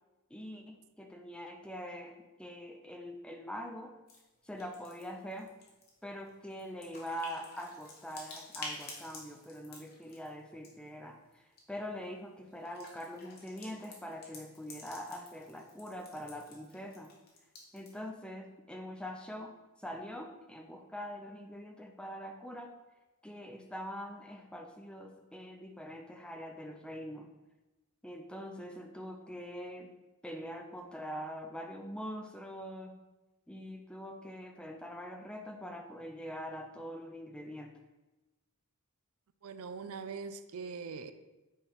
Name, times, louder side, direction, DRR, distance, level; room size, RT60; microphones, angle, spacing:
voice 1, 0.3-3.9 4.4-5.5 6.0-11.4 11.7-17.1 17.7-19.6 19.8-22.7 23.2-27.3 28.0-29.9 30.2-33.0 33.5-37.7, equal, 5° left, 0.5 m, -43 dB
sound 1, 4.1-4.2 4.5-10.9 11.3-11.6 12.5-18.1, left 2 dB, 45° left, 1.5 m, -50 dB
voice 2, 39.4-41.1, right 5 dB, 80° right, 0.5 m, -42 dB
8.5 x 3.4 x 5.6 m
head